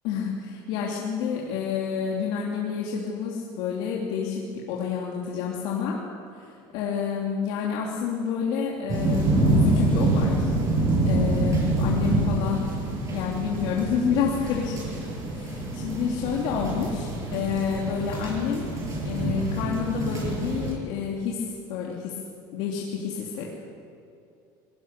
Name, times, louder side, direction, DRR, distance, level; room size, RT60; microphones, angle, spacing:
voice 1, 0.0-6.0 6.3-10.5 11.1-12.7 13.1-14.9 15.3-18.7 19.0-22.2 22.5-23.6, left 7 dB, 70° left, -3 dB, 3.0 m, -29 dB
sound 1, 8.9-20.7, right 2 dB, 35° right, 7.3 m, -26 dB
22.5 x 18.5 x 6.8 m, 2.5 s
cardioid pair, 130°, 10 cm